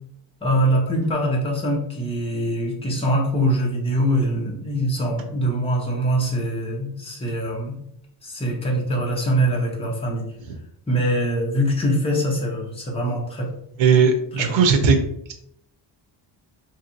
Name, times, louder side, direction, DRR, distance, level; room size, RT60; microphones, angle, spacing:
voice 1, 0.4-7.8 8.2-10.3 10.9-13.5 14.4-14.6, right 1 dB, 15° left, -2 dB, 0.7 m, -23 dB
voice 2, 13.8-15.0, right 5 dB, 90° right, 6 dB, 0.7 m, -17 dB
3.1 x 2.8 x 2.6 m, 0.74 s
cardioid pair, 145°, 44 cm